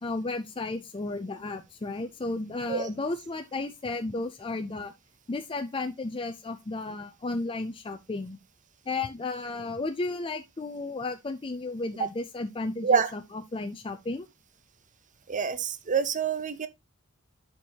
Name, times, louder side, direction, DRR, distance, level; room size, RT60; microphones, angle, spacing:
voice 1, 0.0-4.9 5.3-8.4 8.9-14.3, left 3 dB, 25° left, 0.5 m, -33 dB
voice 2, 15.3-16.7, right 6 dB, 35° right, 0.7 m, -26 dB
11.5 x 4.5 x 2.8 m
head